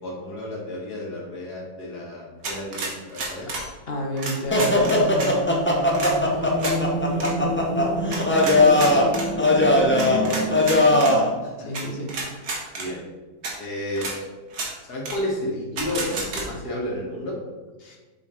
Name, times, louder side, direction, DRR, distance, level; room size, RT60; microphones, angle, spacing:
voice 1, 0.0-3.5 6.3-7.4 8.3-9.2 10.0-10.6 10.9-11.0 11.4-11.7 12.8-13.0 13.6-14.2 14.8-17.4, left 1 dB, 80° left, -3 dB, 2.2 m, -32 dB
sound 1, 2.4-3.7 4.2-5.3 5.9-6.1 6.6-6.8 7.1-7.3 8.1-9.3 10.0-11.1 11.7-11.8 12.1-12.9 13.4-13.5 14.0-14.1 14.5-14.7 15.0-15.2 15.8-16.4, right 3 dB, 75° right, 1.8 m, -30 dB
voice 2, 3.9-5.3 11.7-12.1 17.8-18.0, equal, 40° left, 1 dB, 1.2 m, -31 dB
sound 2, 4.5-11.3, left 1 dB, 15° left, 0.4 m, -20 dB
7.3 x 4.0 x 4.4 m, 1.3 s
omnidirectional pair, 1.7 m